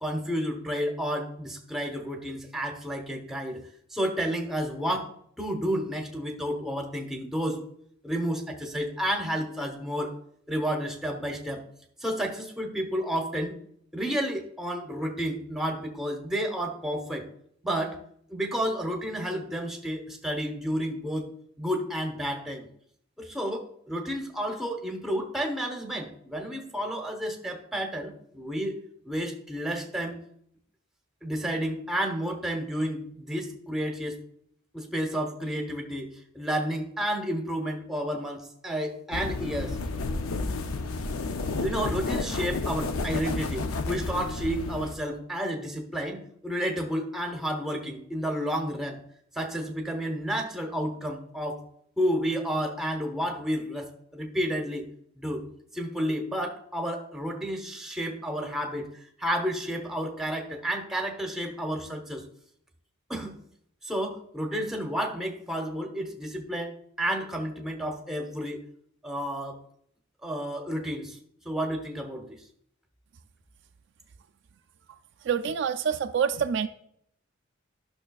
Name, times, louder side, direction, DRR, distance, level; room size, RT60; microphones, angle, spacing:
voice 1, 0.0-3.6 3.9-5.1 5.4-7.6 8.0-10.1 10.5-11.6 12.0-13.6 13.9-17.2 17.6-18.0 18.3-21.3 21.6-22.7 23.2-28.8 29.0-30.2 31.2-34.2 34.7-39.8 41.6-49.0 49.3-51.6 52.0-54.8 55.2-55.4 55.7-58.9 59.2-62.2 63.1-63.4 63.8-66.7 67.0-68.6 69.0-69.6 70.2-71.2 71.4-72.3, equal, ahead, 3 dB, 0.8 m, -31 dB
sound 1, 39.1-45.0, left 3 dB, 80° left, 0.5 m, -31 dB
voice 2, 75.2-76.7, right 7 dB, 55° right, 7 dB, 0.3 m, -26 dB
11.5 x 6.0 x 2.3 m, 0.69 s
head